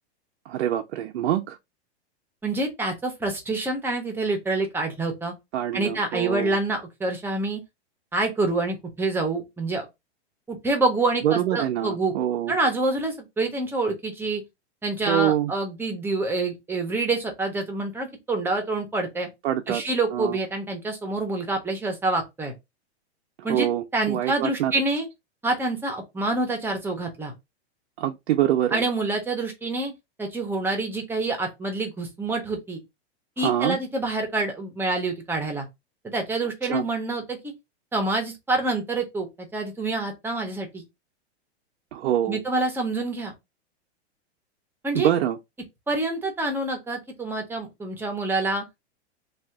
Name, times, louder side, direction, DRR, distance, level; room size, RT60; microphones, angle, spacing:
voice 1, 0.5-1.6 5.5-6.6 11.2-12.6 15.1-15.5 19.4-19.8 20.1-20.4 23.4-24.7 28.0-28.8 33.4-33.8 36.6-36.8 41.9-42.4 44.9-45.4, right 11 dB, 75° right, 0.6 m, -25 dB
voice 2, 2.4-5.3 5.7-7.6 8.1-9.9 10.5-12.1 12.5-14.4 14.8-19.3 19.7-22.5 23.4-25.1 25.4-27.3 28.7-29.9 30.2-32.8 33.4-35.7 36.0-37.4 37.9-40.8 42.3-43.3 44.8-45.1 45.9-48.6, right 2 dB, 5° right, 0.7 m, -27 dB
2.7 x 2.4 x 3.4 m
hypercardioid pair, 135°, 34 cm